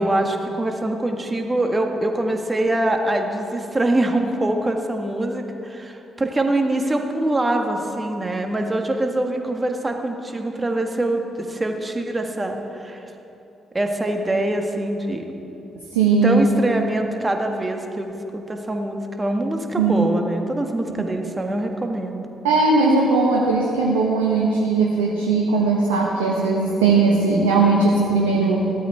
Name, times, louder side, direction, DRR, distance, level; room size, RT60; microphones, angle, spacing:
voice 1, 0.0-13.1 13.7-15.2 16.2-22.3, right 1 dB, 20° right, 4 dB, 1.7 m, -24 dB
voice 2, 15.9-16.4 19.8-20.1 22.4-28.6, right 3 dB, 75° right, -2 dB, 1.2 m, -18 dB
15.5 x 13.0 x 4.6 m, 2.9 s
figure-of-eight pair, 40°, 0 cm